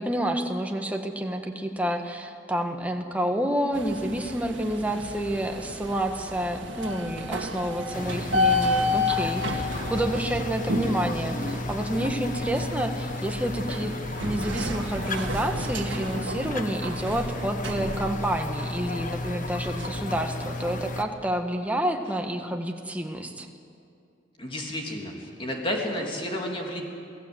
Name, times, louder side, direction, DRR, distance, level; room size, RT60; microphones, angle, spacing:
voice 1, 0.0-23.5, right 1 dB, 10° right, 3 dB, 1.6 m, -29 dB
sound 1, 3.7-19.9, left 2 dB, 80° right, 1.9 m, -32 dB
sound 2, 7.9-21.0, left 2 dB, 45° left, 1.4 m, -33 dB
voice 2, 24.4-26.8, left 1 dB, 30° left, 0 dB, 3.2 m, -31 dB
28.0 x 18.0 x 8.0 m, 2.5 s
head